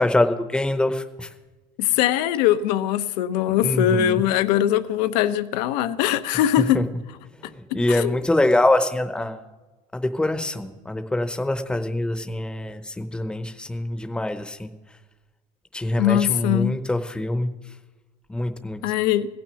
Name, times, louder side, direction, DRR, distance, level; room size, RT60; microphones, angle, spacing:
voice 1, 0.0-1.3 3.5-4.2 6.6-6.8 7.4-9.4 9.9-14.7 15.7-17.5 18.3-18.8, left 1 dB, 5° left, 8 dB, 0.7 m, -24 dB
voice 2, 1.8-6.8 7.9-8.2 16.0-16.7 18.8-19.3, left 11 dB, 85° left, 12 dB, 0.8 m, -21 dB
16.0 x 6.1 x 9.8 m, 1.2 s
cardioid pair, 160°, 21 cm